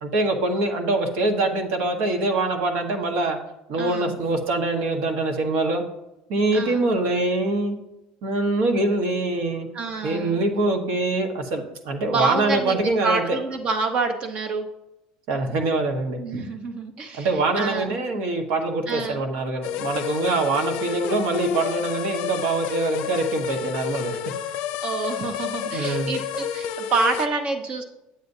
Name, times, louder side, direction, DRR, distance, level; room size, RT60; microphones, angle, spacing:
voice 1, 0.0-3.4 3.7-5.8 6.3-7.8 8.2-9.7 10.0-13.4 15.3-16.2 17.2-24.5 25.7-26.2, right 2 dB, 60° right, 4 dB, 1.3 m, -24 dB
voice 2, 3.8-4.2 6.5-6.9 9.7-10.4 12.1-14.7 16.2-17.3 17.6-17.9 18.9-19.2 24.8-27.8, right 3 dB, 35° right, 6 dB, 0.9 m, -27 dB
sound 1, 19.6-27.3, left 9 dB, 60° left, 0.5 m, -30 dB
9.3 x 8.2 x 2.7 m, 0.94 s
cardioid pair, 170°, 3 cm